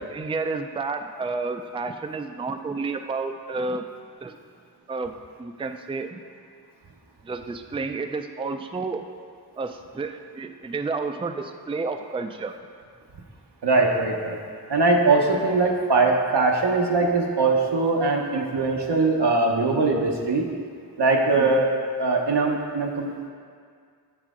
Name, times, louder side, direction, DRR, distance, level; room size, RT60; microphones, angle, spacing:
voice 1, 0.1-3.8 4.2-4.3 4.9-5.1 5.4-6.2 7.2-9.1 9.6-12.5 21.4-21.6, right 3 dB, 15° right, 7 dB, 0.4 m, -30 dB
voice 2, 13.6-14.4 14.7-20.5 21.0-21.7 22.0-23.3, right 3 dB, 85° right, 0 dB, 1.0 m, -21 dB
8.1 x 7.4 x 3.7 m, 2.1 s
wide cardioid pair, 60°, 40 cm